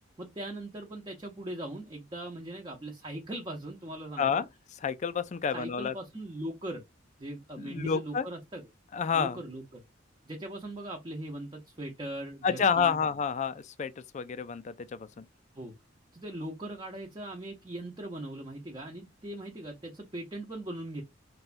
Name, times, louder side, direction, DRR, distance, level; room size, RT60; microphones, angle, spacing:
voice 1, 0.2-4.5 5.5-6.8 7.2-8.6 9.1-9.6 10.3-13.0 15.6-15.7 16.1-21.0, right 1 dB, 25° right, 0.6 m, -40 dB
voice 2, 4.8-5.9 7.6-8.2 8.9-9.4 12.4-15.2, left 6 dB, 35° left, 0.3 m, -29 dB
4.1 x 2.3 x 2.4 m
head